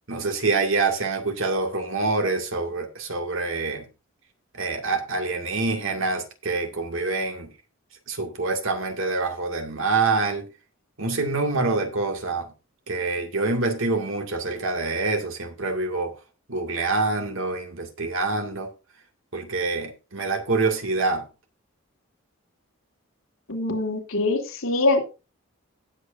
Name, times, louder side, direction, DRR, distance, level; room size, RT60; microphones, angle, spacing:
voice 1, 0.1-3.9 4.5-7.5 8.1-10.5 11.0-12.5 12.9-16.1 16.5-18.7 19.3-21.3, right 3 dB, 65° right, 2.2 m, -26 dB
voice 2, 23.5-25.0, left 2 dB, 70° left, 3.0 m, -23 dB
18.0 x 8.0 x 2.6 m
head